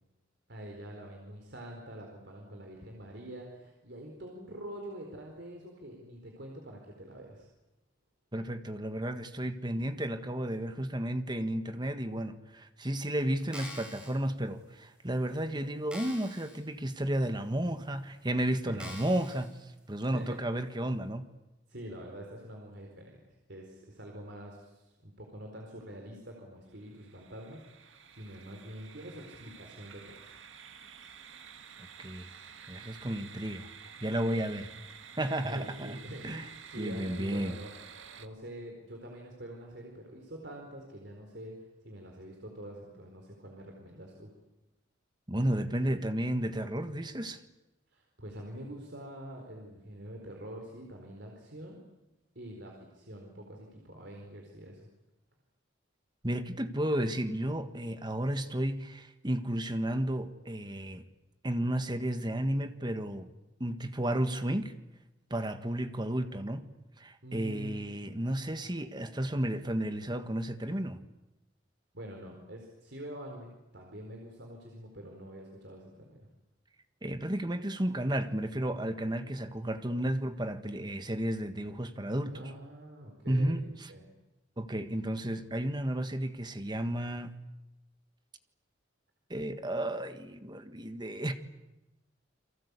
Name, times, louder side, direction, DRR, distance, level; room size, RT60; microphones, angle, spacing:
voice 1, 0.5-7.5 18.7-18.9 20.1-20.4 21.7-23.2 23.5-30.4 34.6-34.7 35.4-36.4 36.7-37.7 38.2-41.5 41.8-44.3 47.9-51.8 52.3-54.9 67.2-68.0 71.9-76.3 82.3-83.6 83.9-84.0 85.1-85.2, right 1 dB, 65° right, 4.5 m, -45 dB
voice 2, 8.3-19.5 19.9-21.3 32.0-32.3 32.7-33.7 34.0-34.7 35.1-36.0 36.2-36.4 36.7-37.6 45.3-47.4 56.2-61.0 61.4-63.3 63.6-64.7 65.3-66.7 67.0-71.0 77.0-82.4 83.3-83.9 84.6-87.3 89.3-91.3, right 1 dB, 25° right, 1.6 m, -32 dB
sound 1, 13.4-14.1 14.8-14.9 15.3-15.4 15.9-16.6 17.0-17.1 17.9-18.0 18.8-19.5 20.0-20.1, equal, 5° right, 6.8 m, -45 dB
sound 2, 26.7-38.3, right 7 dB, 90° right, 1.8 m, -51 dB
29.5 x 23.0 x 8.4 m
head